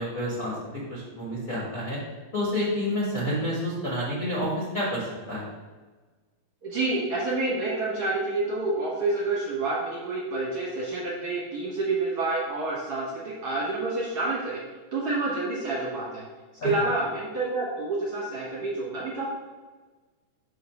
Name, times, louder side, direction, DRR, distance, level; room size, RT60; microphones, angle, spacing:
voice 1, 0.0-2.0 2.3-5.5 16.6-16.7, equal, 50° left, -6 dB, 1.0 m, -29 dB
voice 2, 6.6-14.6 14.9-16.2 16.6-19.3, right 2 dB, 55° right, -6 dB, 1.8 m, -28 dB
6.4 x 3.7 x 5.7 m, 1.3 s
omnidirectional pair, 4.1 m